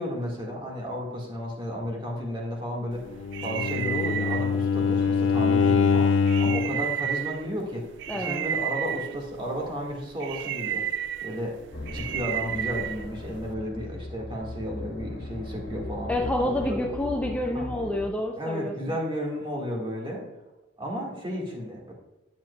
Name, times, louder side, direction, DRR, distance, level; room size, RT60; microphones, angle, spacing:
voice 1, 0.0-3.0 3.4-10.9 11.2-11.6 11.9-16.1 16.4-16.8 17.5-17.7 18.4-20.2 20.8-21.9, equal, 25° right, -2 dB, 1.9 m, -33 dB
sound 1, 2.9-13.5, right 10 dB, 65° right, 0.4 m, -34 dB
Bowed string instrument, 3.2-6.8, left 5 dB, 70° left, 0.5 m, -23 dB
voice 2, 8.1-8.4 16.1-19.0, left 1 dB, 5° left, 0 dB, 0.5 m, -28 dB
sound 2, 11.7-18.1, left 2 dB, 55° left, 1.2 m, -38 dB
10.0 x 7.4 x 2.4 m, 1.0 s
head